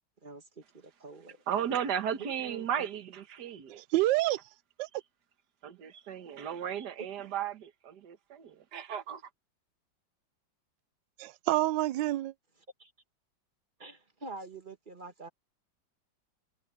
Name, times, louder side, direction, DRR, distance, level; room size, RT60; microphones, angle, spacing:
voice 1, 0.2-1.4 2.2-2.9 12.8-12.9 13.8-15.3, right 3 dB, 25° right, 1.7 m, -46 dB
voice 2, 1.5-3.8 5.6-9.2, right 9 dB, 60° right, 1.9 m, -35 dB
voice 3, 3.8-4.4 4.8-4.9 11.2-12.3, right 16 dB, 80° right, 1.3 m, -27 dB
omnidirectional pair, 2.0 m